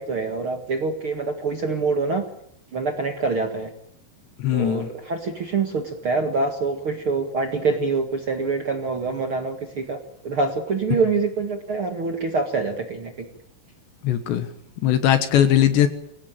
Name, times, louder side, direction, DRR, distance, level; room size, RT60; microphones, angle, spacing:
voice 1, 0.0-2.2 2.7-3.7 4.5-10.0 10.2-13.2, right 4 dB, 70° right, 5 dB, 1.2 m, -25 dB
voice 2, 4.4-4.9 14.0-14.5 14.8-15.9, left 11 dB, 70° left, 10 dB, 3.3 m, -19 dB
25.5 x 18.0 x 9.0 m, 0.75 s
omnidirectional pair, 5.7 m